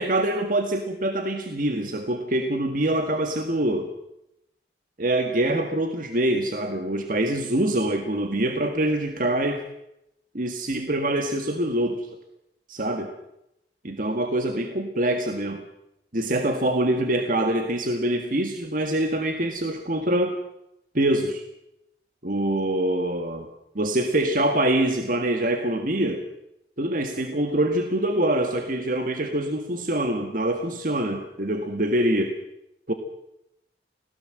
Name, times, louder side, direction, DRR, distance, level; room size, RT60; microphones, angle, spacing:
voice 1, 0.0-3.9 5.0-9.6 10.3-12.1 12.7-13.1 13.8-15.6 16.1-20.4 20.9-21.4 22.2-23.5 23.8-26.3 26.8-32.3 32.9-33.0, right 1 dB, 50° right, 6 dB, 1.7 m, -25 dB
25.0 x 17.5 x 7.7 m, 0.84 s
head